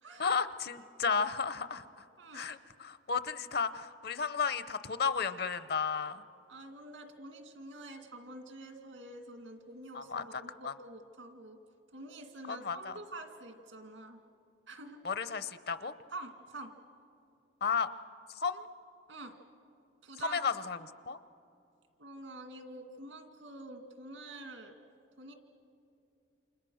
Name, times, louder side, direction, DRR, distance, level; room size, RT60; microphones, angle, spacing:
voice 1, 0.2-2.1 2.3-6.2 9.9-10.7 12.5-13.0 15.0-15.9 17.6-17.9 18.3-18.7 20.2-20.8 21.1-21.2, left 5 dB, 55° left, 13 dB, 0.7 m, -33 dB
voice 2, 2.2-2.5 6.5-11.6 11.9-14.2 14.7-15.0 16.1-16.7 19.1-19.4 20.0-20.4 22.0-24.7 25.2-25.3, right 2 dB, 85° right, 5 dB, 2.3 m, -47 dB
29.0 x 27.0 x 6.4 m, 2.6 s
head